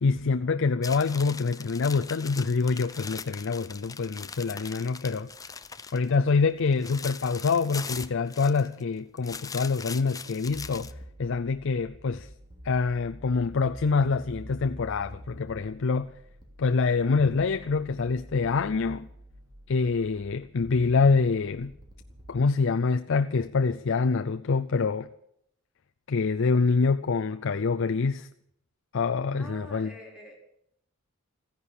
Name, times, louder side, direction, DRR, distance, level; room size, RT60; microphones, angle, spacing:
voice 1, 0.0-5.3 5.9-10.9 11.2-12.3 12.6-16.1 16.6-19.1 19.7-21.7 22.3-25.1 26.1-28.3 28.9-29.9, left 4 dB, 60° left, 0.5 m, -26 dB
sound 1, 0.8-6.1 6.4-8.8 9.2-10.9, left 5 dB, 15° left, 0.6 m, -41 dB
sound 2, 10.5-22.4, equal, 20° right, 2.9 m, -47 dB
voice 2, 29.4-30.4, left 1 dB, 5° right, 4.7 m, -46 dB
14.5 x 10.5 x 8.4 m
head